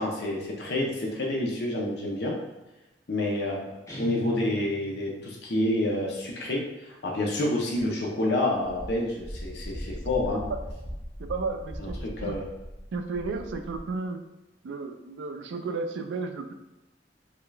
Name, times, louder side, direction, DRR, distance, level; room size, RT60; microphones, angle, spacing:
voice 1, 0.0-2.3 3.1-10.4 11.8-11.9 12.2-12.5, left 1 dB, 65° left, -2 dB, 0.7 m, -28 dB
Guitar, 3.9-5.1, left 2 dB, 15° left, 0.6 m, -39 dB
Wind, 8.6-13.9, equal, 20° right, 0.9 m, -39 dB
voice 2, 11.2-12.3 12.9-14.2 14.6-16.5, right 4 dB, 85° right, 8 dB, 0.4 m, -33 dB
3.8 x 2.3 x 3.2 m, 1.0 s
head